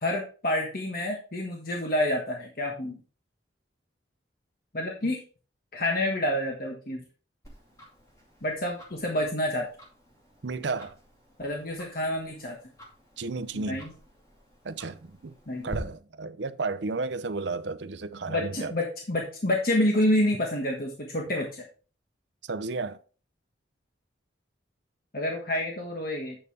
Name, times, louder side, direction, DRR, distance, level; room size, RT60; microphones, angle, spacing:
voice 1, 0.0-3.0 4.7-5.2 5.7-7.0 8.4-9.7 11.4-12.6 13.5-13.9 15.5-15.7 18.3-21.6 25.1-26.4, left 1 dB, 50° left, 1.4 m, -28 dB
Tick-tock, 7.4-15.8, equal, 20° left, 2.5 m, -49 dB
voice 2, 10.4-10.9 13.2-13.8 14.6-15.3 15.6-18.7 22.5-23.0, right 3 dB, 70° right, 0.6 m, -33 dB
8.9 x 6.7 x 3.4 m
head